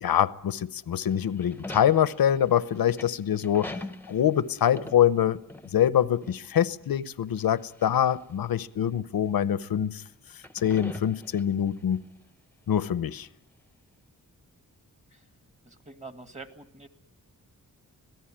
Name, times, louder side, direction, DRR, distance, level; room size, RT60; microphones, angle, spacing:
voice 1, 0.0-3.7 4.1-5.4 5.7-10.0 10.5-12.0 12.7-13.3, left 9 dB, 80° left, 17 dB, 0.8 m, -24 dB
sound 1, 1.1-6.0 6.2-6.4 7.4-8.2 8.8-8.9 10.3-11.8, left 1 dB, 5° left, 0.9 m, -42 dB
voice 2, 15.7-16.9, right 3 dB, 20° right, 9 dB, 1.9 m, -45 dB
26.0 x 17.0 x 8.8 m, 0.77 s
wide cardioid pair, 95°, 35 cm